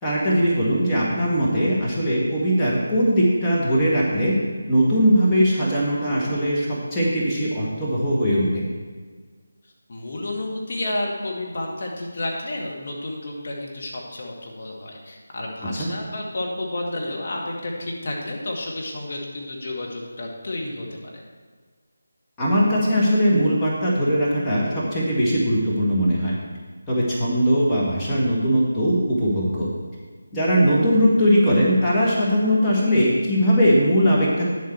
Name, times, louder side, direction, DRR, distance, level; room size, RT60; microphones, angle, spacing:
voice 1, 0.0-4.4 4.7-8.6 15.8-15.9 22.4-26.3 26.9-29.7 30.3-34.5, equal, 10° left, -9 dB, 1.9 m, -20 dB
voice 2, 9.9-21.1, left 1 dB, 45° left, -1 dB, 2.0 m, -31 dB
10.0 x 7.5 x 4.6 m, 1.5 s
figure-of-eight pair, 160°, 0 cm